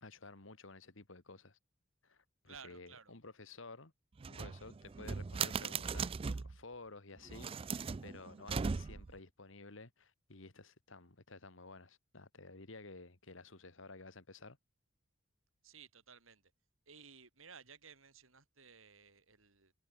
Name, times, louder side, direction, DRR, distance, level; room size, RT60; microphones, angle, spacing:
voice 1, 0.0-1.6 2.0-3.9 4.3-14.6, left 3 dB, 70° left, 2.1 m, -53 dB
voice 2, 2.5-3.1 15.6-16.5 16.9-19.7, right 6 dB, 85° right, 5.8 m, -57 dB
sound 1, 4.2-6.6 7.2-9.2, right 5 dB, 25° right, 0.3 m, -39 dB
head